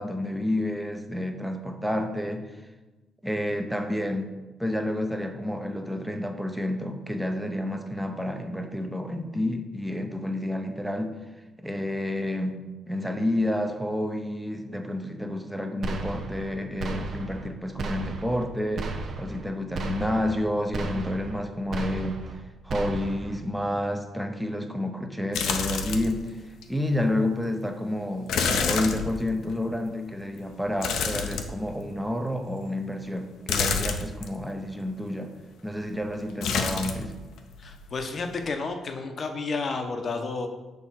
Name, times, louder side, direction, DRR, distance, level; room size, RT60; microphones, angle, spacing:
voice 1, 0.0-2.5 3.2-4.3 4.6-11.2 11.6-22.2 22.6-26.3 26.7-35.3 35.6-37.1, left 1 dB, 5° right, 6 dB, 0.7 m, -30 dB
sound 1, 15.8-16.5 16.8-17.5 17.8-18.5 18.8-19.5 19.7-20.4 20.7-21.4 21.7-22.4 22.7-23.4, right 3 dB, 55° right, 0.7 m, -34 dB
sound 2, 25.3-26.2 26.6-26.7 28.3-29.6 30.8-31.9 33.5-34.3 36.4-37.1 37.4-38.0 38.3-38.5, left 5 dB, 80° left, 0.6 m, -28 dB
voice 2, 37.6-40.5, left 3 dB, 45° left, 6 dB, 0.8 m, -31 dB
6.5 x 3.5 x 5.7 m, 1.2 s
cardioid pair, 90°, 0 cm